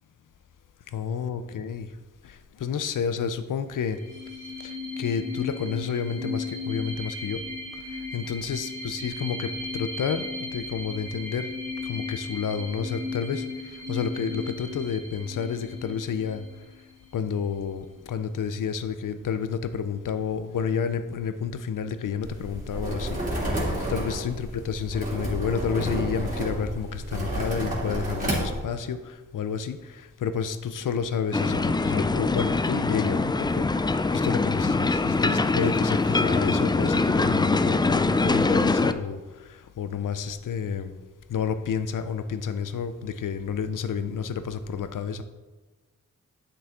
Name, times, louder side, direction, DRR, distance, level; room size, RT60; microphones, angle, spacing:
voice 1, 0.9-1.9 2.2-4.0 4.6-7.4 7.9-11.5 11.8-16.4 17.1-23.2 23.5-33.9 34.1-40.9 41.3-45.2, left 6 dB, 80° left, 11 dB, 0.6 m, -30 dB
metal-ring, 3.8-17.2, left 3 dB, 75° right, 1.8 m, -36 dB
sound 1, 22.2-28.6, right 1 dB, 25° right, 2.6 m, -30 dB
sound 2, 31.3-38.9, left 3 dB, 15° left, 0.3 m, -23 dB
7.9 x 6.3 x 3.6 m, 1.2 s
cardioid pair, 65°, 31 cm